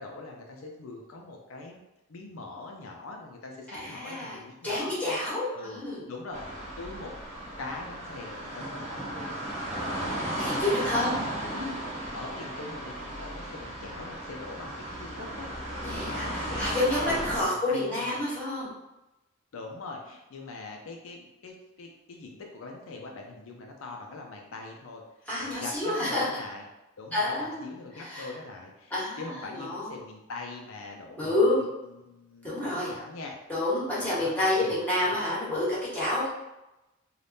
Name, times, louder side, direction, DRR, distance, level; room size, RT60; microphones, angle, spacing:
voice 1, 0.0-1.8 2.1-5.2 5.5-5.8 6.1-7.1 7.6-9.3 9.5-10.3 10.7-11.2 12.1-15.5 16.1-18.2 19.5-25.0 25.4-26.6 27.0-33.4 34.0-34.3 34.6-34.7 35.3-35.4, left 3 dB, 80° left, 1 dB, 0.5 m, -42 dB
voice 2, 3.7-6.1 10.4-11.8 15.8-18.7 25.3-26.2 27.1-27.6 27.9-28.3 28.9-30.0 31.2-31.6 32.4-32.9 33.5-36.3, left 1 dB, 10° left, -8 dB, 1.2 m, -29 dB
sound 1, 6.3-17.4, right 1 dB, 35° right, 0.9 m, -35 dB
3.4 x 2.3 x 2.6 m, 0.97 s
head